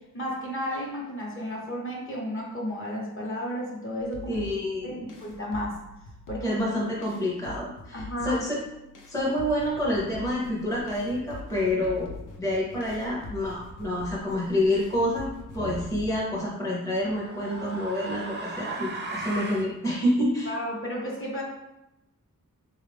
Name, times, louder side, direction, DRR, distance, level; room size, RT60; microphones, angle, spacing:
voice 1, 0.1-4.4 4.8-5.8 6.3-6.6 7.9-8.4 20.5-21.4, equal, 40° left, -3 dB, 1.0 m, -33 dB
sound 1, 4.0-16.3, left 2 dB, 70° left, 0.6 m, -44 dB
voice 2, 4.3-5.1 6.4-8.6 9.1-20.5, left 1 dB, 10° left, -5 dB, 0.7 m, -28 dB
sound 2, 15.6-16.0 17.0-19.7, right 2 dB, 35° right, 0.4 m, -36 dB
3.7 x 2.4 x 3.3 m, 0.92 s
wide cardioid pair, 110°, 33 cm